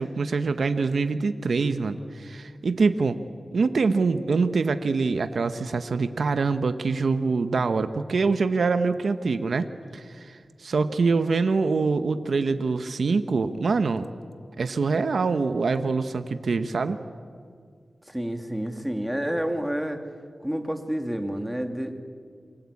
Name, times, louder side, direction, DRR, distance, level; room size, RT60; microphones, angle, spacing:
voice 1, 0.0-3.2 3.5-9.7 9.9-14.1 14.6-17.0, right 4 dB, 80° right, 9 dB, 1.1 m, -24 dB
voice 2, 18.1-20.0 20.4-22.0, equal, 5° right, 5 dB, 2.9 m, -29 dB
28.0 x 24.0 x 8.6 m, 2.1 s
cardioid pair, 55°, 0 cm